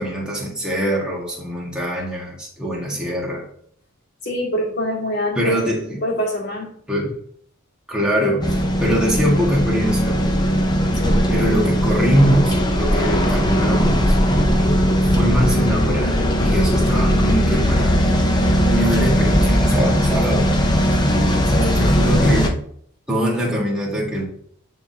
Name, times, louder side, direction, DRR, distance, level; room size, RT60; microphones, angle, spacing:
voice 1, 0.0-3.4 5.3-6.0 6.9-7.1 7.9-10.2 11.3-14.2 15.1-17.9 18.6-20.5 21.6-22.5 23.1-24.2, equal, 5° right, -4 dB, 1.6 m, -22 dB
voice 2, 4.2-5.6 6.0-6.8 10.9-11.3 21.5-21.8, equal, 50° left, -3 dB, 2.0 m, -25 dB
sound 1, 8.4-22.5, equal, 20° left, 0.6 m, -18 dB
9.4 x 3.6 x 2.8 m, 0.63 s
head